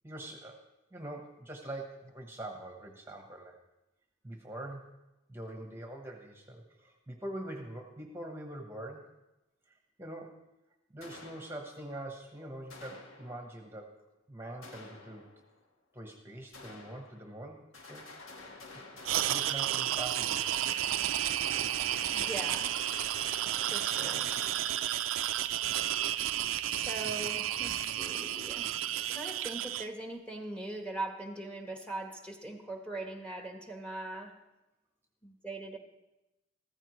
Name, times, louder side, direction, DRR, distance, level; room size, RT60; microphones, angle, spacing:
voice 1, 0.0-0.6 0.9-3.6 4.2-4.8 5.3-9.1 9.7-10.3 10.9-13.9 14.3-15.3 15.9-17.6 17.9-18.1 18.7-18.8 19.3-20.5 24.0-24.3, right 1 dB, 10° right, 2 dB, 1.0 m, -43 dB
sound 1, 11.0-12.0 12.7-13.7 14.6-15.6 16.5-17.5 17.7-25.3, left 3 dB, 90° left, 1.6 m, -50 dB
sound 2, 19.0-29.9, right 12 dB, 85° right, 0.5 m, -32 dB
voice 2, 22.1-22.8 23.7-24.3 26.7-28.8 29.1-34.4 35.2-35.8, right 2 dB, 5° left, 3 dB, 1.2 m, -41 dB
14.5 x 14.5 x 3.1 m, 0.97 s
head